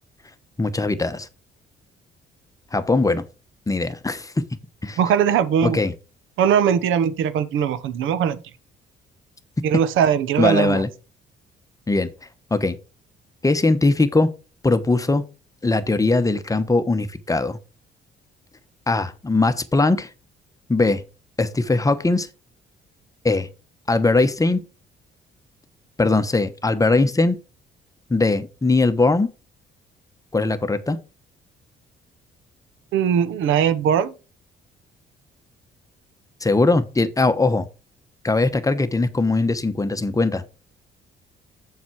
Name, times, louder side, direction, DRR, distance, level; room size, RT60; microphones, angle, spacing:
voice 1, 0.6-1.3 2.7-3.2 3.7-4.4 4.8-5.0 5.6-5.9 10.4-10.9 11.9-12.1 12.5-12.8 13.4-14.3 14.6-15.2 15.6-17.6 18.9-20.1 20.7-21.0 21.4-22.3 23.2-23.5 23.9-24.6 26.0-27.4 28.1-29.3 30.3-31.0 36.4-37.7 38.2-40.4, left 3 dB, 15° left, 1.0 m, -20 dB
voice 2, 5.0-5.8 6.4-8.4 9.6-10.8 32.9-34.1, right 8 dB, 85° right, 0.8 m, -20 dB
7.2 x 5.8 x 4.6 m
cardioid pair, 90°, 20 cm